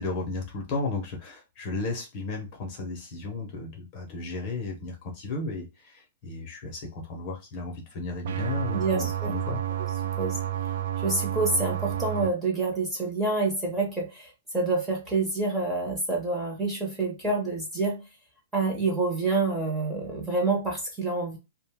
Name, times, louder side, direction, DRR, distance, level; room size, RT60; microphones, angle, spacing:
voice 1, 0.0-9.6, left 3 dB, 30° left, 0.6 m, -34 dB
sound 1, 8.2-12.3, right 12 dB, 55° right, 0.3 m, -30 dB
voice 2, 8.7-9.3 10.2-10.4 11.0-18.0 18.5-21.4, right 3 dB, 10° right, 0.7 m, -27 dB
2.5 x 2.1 x 3.3 m
hypercardioid pair, 175°, 0 cm